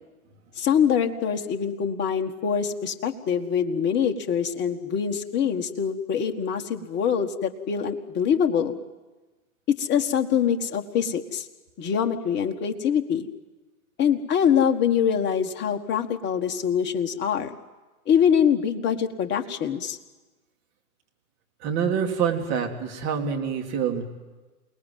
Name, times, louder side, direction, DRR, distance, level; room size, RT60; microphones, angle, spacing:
voice 1, 0.6-8.8 9.8-11.4 11.8-13.3 14.0-17.5 18.1-20.0, left 8 dB, 25° left, 4 dB, 1.6 m, -24 dB
voice 2, 21.6-24.0, right 7 dB, 35° right, 3 dB, 3.4 m, -26 dB
28.5 x 19.0 x 9.3 m, 1.2 s
figure-of-eight pair, 115°, 45 cm